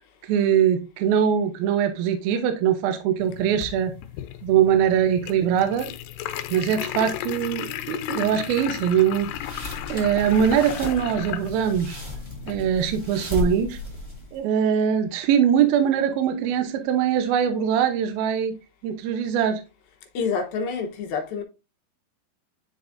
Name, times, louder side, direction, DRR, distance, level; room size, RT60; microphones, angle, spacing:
voice 1, 0.3-3.9 4.4-5.9 6.5-9.3 9.9-12.0 12.5-13.8 14.3-18.5 18.8-19.6, right 8 dB, 75° right, 2.4 m, -22 dB
sound 1, 3.2-12.7, left 12 dB, 85° left, 2.8 m, -35 dB
sound 2, 9.2-14.4, left 3 dB, 10° right, 1.4 m, -34 dB
voice 2, 20.1-21.4, left 5 dB, 70° left, 2.6 m, -27 dB
10.5 x 4.0 x 2.5 m
omnidirectional pair, 4.7 m